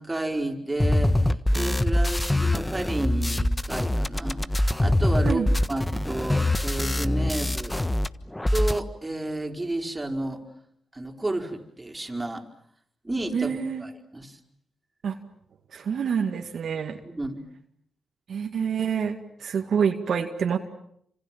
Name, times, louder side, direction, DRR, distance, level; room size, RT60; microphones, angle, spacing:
voice 1, 0.0-7.8 8.5-10.4 10.9-12.4 13.0-14.4 17.0-17.4, right 2 dB, 20° right, 3 dB, 4.4 m, -31 dB
sound 1, 0.8-8.1 8.3-8.8, left 1 dB, 15° left, 1.4 m, -24 dB
voice 2, 13.3-13.8 15.0-15.2 15.7-17.0 18.3-20.6, right 7 dB, 65° right, 3 dB, 2.1 m, -27 dB
28.5 x 26.5 x 7.4 m, 0.70 s
supercardioid pair, 50°, 0 cm